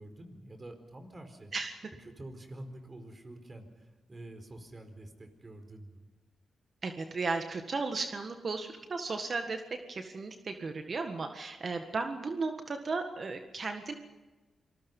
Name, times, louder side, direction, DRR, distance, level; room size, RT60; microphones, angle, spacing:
voice 1, 0.0-1.5 2.0-6.1, right 1 dB, 35° right, 7 dB, 4.5 m, -47 dB
voice 2, 6.8-9.6 9.9-13.9, right 3 dB, 50° right, 6 dB, 1.6 m, -35 dB
26.5 x 20.5 x 5.5 m, 1.2 s
cardioid pair, 70°, 0 cm